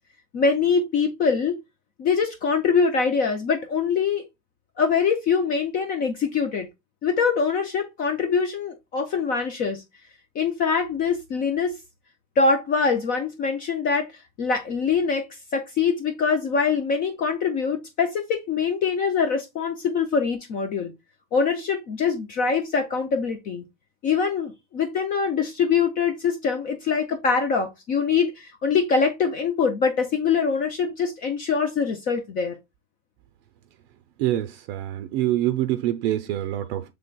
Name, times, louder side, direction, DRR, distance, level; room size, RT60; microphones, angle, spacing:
voice 1, 0.3-1.6 2.0-4.2 4.8-6.7 7.0-9.8 10.4-11.8 12.4-14.1 14.4-15.3 15.5-20.9 21.3-23.6 24.0-32.5, left 5 dB, 25° left, 0.3 m, -23 dB
voice 2, 34.2-36.9, right 13 dB, 60° right, 0.5 m, -25 dB
6.7 x 3.3 x 2.2 m
supercardioid pair, 155°, 35 cm